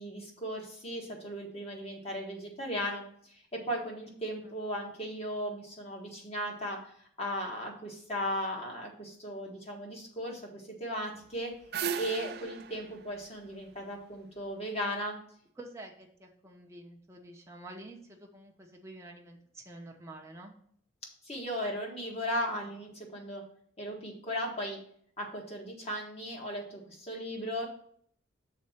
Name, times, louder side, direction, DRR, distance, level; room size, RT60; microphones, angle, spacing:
voice 1, 0.0-3.0 3.3-6.9 7.2-11.5 11.9-15.1 21.2-23.4 23.8-24.8 25.2-27.7, equal, 30° left, -1 dB, 1.5 m, -36 dB
sound 1, 11.2-14.4, right 7 dB, 50° right, 0.3 m, -38 dB
voice 2, 15.6-20.5, right 2 dB, 15° right, 1 dB, 0.9 m, -48 dB
6.5 x 4.1 x 5.8 m, 0.62 s
head